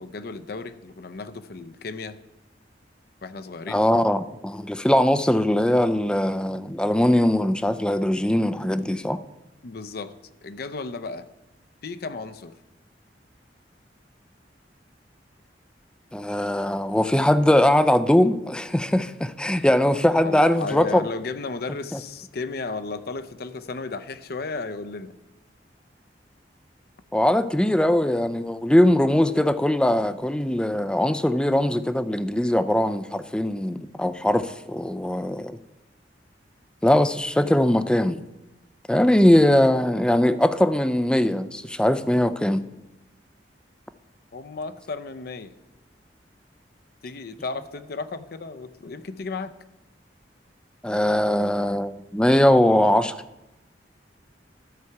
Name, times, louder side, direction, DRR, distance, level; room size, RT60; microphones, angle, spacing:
voice 1, 0.0-2.2 3.2-3.8 9.6-10.1 10.4-11.3 11.8-12.5 20.2-25.1 44.3-45.5 47.0-49.5, left 3 dB, 60° left, 0.6 m, -34 dB
voice 2, 3.7-9.2 16.1-21.0 21.9-22.0 27.1-35.6 36.8-38.2 38.9-42.6 50.8-53.1, left 1 dB, 5° left, 0.4 m, -21 dB
12.5 x 6.8 x 4.6 m
head